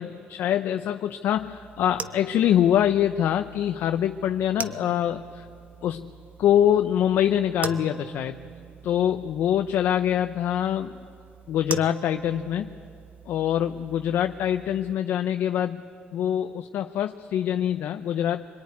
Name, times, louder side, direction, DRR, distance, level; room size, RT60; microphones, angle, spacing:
voice 1, 0.0-5.5 5.8-6.1 6.4-8.4 8.8-11.0 11.5-12.7 13.3-15.8 16.1-18.5, left 10 dB, 75° left, 7 dB, 0.7 m, -24 dB
sound 1, 1.4-14.9, right 6 dB, 50° right, 1.0 m, -41 dB
25.5 x 21.0 x 9.6 m, 2.5 s
cardioid pair, 75°, 4 cm